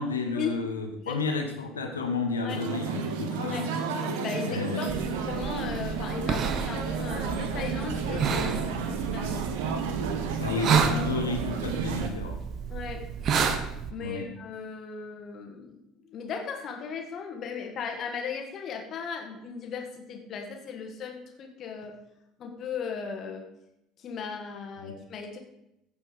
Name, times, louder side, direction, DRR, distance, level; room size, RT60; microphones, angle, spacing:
voice 1, 0.0-3.7 4.4-4.8 10.4-12.4 14.0-14.3 24.8-24.9, left 4 dB, 80° left, 3 dB, 1.3 m, -31 dB
voice 2, 1.0-1.4 2.4-2.6 3.4-3.7 4.0-9.5 12.7-13.1 13.9-22.0 22.4-23.5 24.0-25.4, left 6 dB, 40° left, 3 dB, 1.8 m, -37 dB
sound 1, 2.5-12.1, right 5 dB, 65° right, 1.0 m, -32 dB
sound 2, 4.9-13.9, right 6 dB, 45° right, 0.9 m, -31 dB
15.0 x 5.3 x 5.1 m, 0.85 s
figure-of-eight pair, 60°, 0 cm